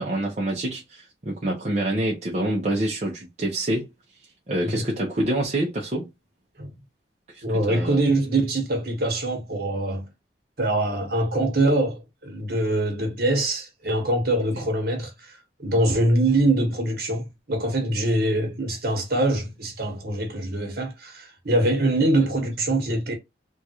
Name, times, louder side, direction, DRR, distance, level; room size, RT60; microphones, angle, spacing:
voice 1, 0.0-3.9 4.5-6.1 7.3-8.0, right 1 dB, 35° right, 0.7 m, -26 dB
voice 2, 7.4-10.1 10.6-23.1, right 1 dB, 55° right, 1.3 m, -24 dB
3.6 x 2.4 x 2.9 m
head